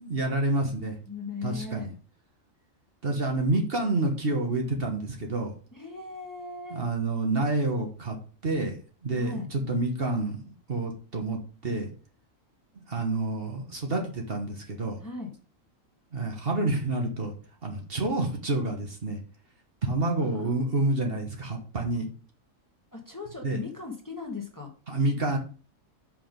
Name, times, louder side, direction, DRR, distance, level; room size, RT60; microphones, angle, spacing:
voice 1, 0.0-1.0 1.4-1.9 3.0-5.6 6.7-8.2 8.4-8.7 9.0-10.4 10.7-11.9 12.9-15.0 16.1-17.3 17.6-19.2 19.8-22.1 23.4-23.6 24.9-25.4, right 2 dB, 50° right, 2 dB, 1.4 m, -28 dB
voice 2, 1.1-1.9 5.7-6.9 9.2-9.5 15.0-15.3 20.2-20.6 22.9-24.7, left 4 dB, 15° left, 0 dB, 1.3 m, -38 dB
5.7 x 5.1 x 5.1 m, 0.39 s
omnidirectional pair, 1.3 m